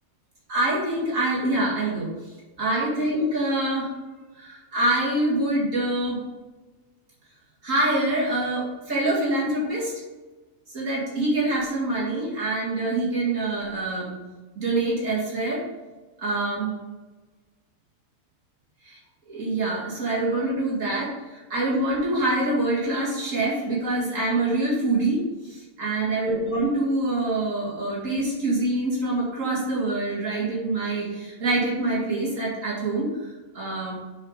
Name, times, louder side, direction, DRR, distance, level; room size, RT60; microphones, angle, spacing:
voice 1, 0.5-3.9 4.3-6.2 7.6-9.9 10.7-14.2 14.6-15.6 16.2-16.7 18.8-19.0 19.3-33.9, right 2 dB, 65° right, -6 dB, 2.5 m, -25 dB
7.3 x 4.9 x 4.8 m, 1.2 s
omnidirectional pair, 1.4 m